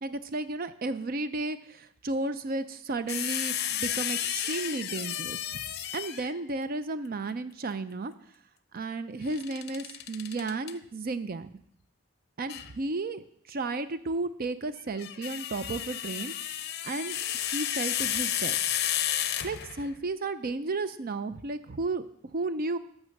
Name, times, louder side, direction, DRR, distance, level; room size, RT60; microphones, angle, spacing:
voice 1, 0.0-8.1 8.7-11.5 12.4-18.6 19.4-22.8, right 3 dB, 45° right, 12 dB, 0.5 m, -33 dB
sound 1, 3.1-6.4 9.3-10.7 12.5-12.7 14.8-19.9, left 11 dB, 50° left, 0.7 m, -32 dB
12.5 x 6.1 x 6.5 m, 0.70 s
head